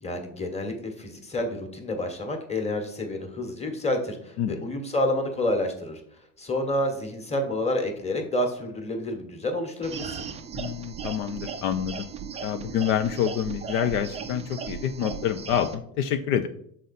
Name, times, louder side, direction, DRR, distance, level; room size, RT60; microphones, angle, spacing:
voice 1, 0.0-6.0 6.4-10.3, left 1 dB, 15° left, 4 dB, 1.3 m, -29 dB
sound 1, 9.8-15.8, right 6 dB, 15° right, 0.3 m, -37 dB
voice 2, 10.5-12.1 12.4-16.5, left 9 dB, 65° left, 8 dB, 0.6 m, -27 dB
6.2 x 4.1 x 4.2 m, 0.66 s
hypercardioid pair, 95°, 49 cm